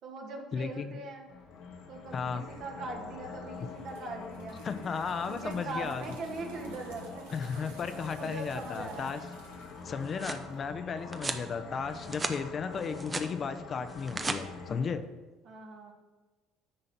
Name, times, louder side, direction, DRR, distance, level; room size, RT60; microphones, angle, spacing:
voice 1, 0.0-1.3 1.9-4.6 5.3-7.2 8.2-9.1 11.9-12.2 15.4-15.9, right 3 dB, 60° right, 1 dB, 1.8 m, -41 dB
voice 2, 0.5-0.9 2.1-2.4 4.6-6.0 7.3-9.2 9.8-15.0, left 5 dB, 45° left, 10 dB, 0.6 m, -35 dB
sound 1, 1.3-14.8, left 4 dB, 70° left, 1.2 m, -45 dB
sound 2, 3.5-10.6, right 3 dB, 85° right, 1.2 m, -53 dB
sound 3, 9.8-10.5 11.1-11.5 11.9-12.4 12.7-13.3 13.9-14.4, right 3 dB, 25° right, 0.8 m, -36 dB
9.8 x 3.9 x 5.8 m, 1.2 s
hypercardioid pair, 65°, 0 cm